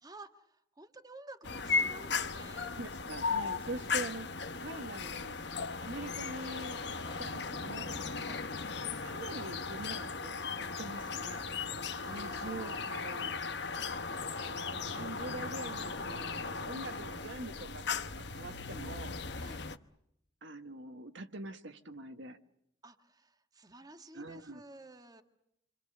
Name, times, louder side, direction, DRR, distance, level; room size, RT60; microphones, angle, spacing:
voice 1, 0.0-2.7 6.9-7.2 8.1-8.4 11.9-12.8 19.3-19.7 22.8-25.2, right 2 dB, 20° right, 7 dB, 1.6 m, -52 dB
sound 1, 1.4-19.8, left 4 dB, 60° left, 1.1 m, -37 dB
voice 2, 2.7-5.4 5.8-6.8 7.2-8.0 9.0-11.4 12.1-13.3 14.4-17.8 18.1-19.2 20.4-22.4 24.1-24.6, right 2 dB, 70° right, 8 dB, 1.4 m, -44 dB
27.5 x 25.5 x 6.7 m, 0.76 s
head